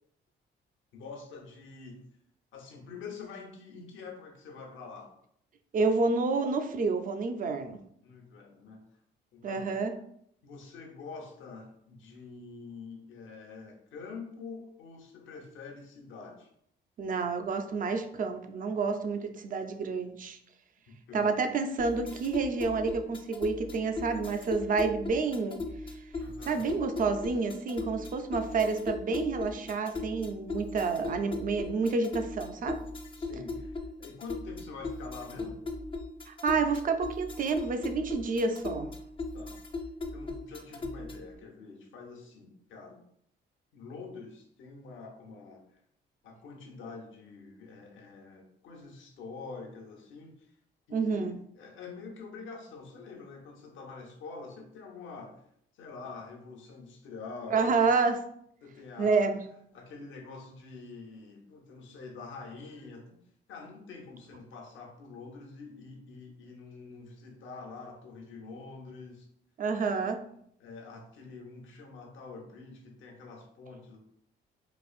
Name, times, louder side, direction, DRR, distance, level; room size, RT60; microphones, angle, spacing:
voice 1, 0.9-2.0 2.5-5.1 8.0-8.8 9.3-9.8 10.4-16.5 21.1-21.5 26.2-26.7 33.2-35.6 39.3-39.6 40.1-43.0 43.7-45.8 46.2-50.5 50.9-55.4 55.7-58.0 58.6-59.3 59.7-63.2 63.5-69.3 70.6-74.0, left 4 dB, 75° left, 1 dB, 0.8 m, -46 dB
voice 2, 5.7-7.8 9.4-9.9 17.0-20.4 21.1-25.6 26.5-32.8 36.3-38.9 50.9-51.4 57.5-58.2 59.0-59.4 69.6-70.2, right 4 dB, 45° right, 7 dB, 0.5 m, -29 dB
sound 1, 21.8-41.4, left 3 dB, 25° left, 0.5 m, -39 dB
4.1 x 2.5 x 2.4 m, 0.71 s
cardioid pair, 90°, 20 cm